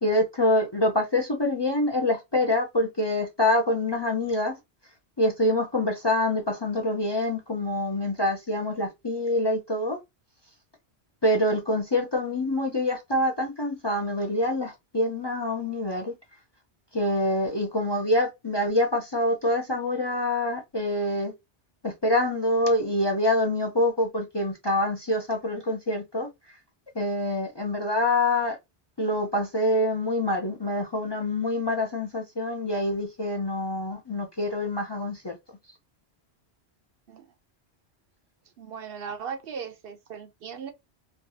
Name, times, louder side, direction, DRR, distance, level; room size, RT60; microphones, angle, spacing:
voice 1, 0.0-4.5 5.2-10.0 11.2-16.1 16.9-21.3 21.8-26.3 27.0-28.6 29.0-35.3, left 1 dB, 30° left, 0.6 m, -26 dB
voice 2, 38.6-40.7, right 6 dB, 65° right, 0.8 m, -37 dB
3.4 x 2.3 x 2.6 m
omnidirectional pair, 1.1 m